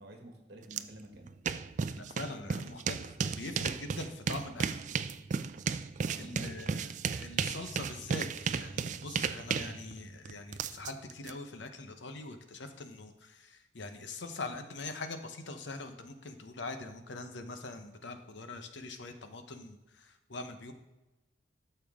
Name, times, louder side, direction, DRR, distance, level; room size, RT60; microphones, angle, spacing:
voice 1, 0.0-1.3 5.9-6.8, right 1 dB, 55° right, 2 dB, 1.7 m, -51 dB
sound 1, 0.7-0.8 1.1-11.3, right 6 dB, 40° right, 0.3 m, -34 dB
voice 2, 1.9-4.8 6.2-20.7, left 3 dB, 70° left, 7 dB, 0.9 m, -43 dB
12.5 x 6.8 x 3.6 m, 1.0 s
head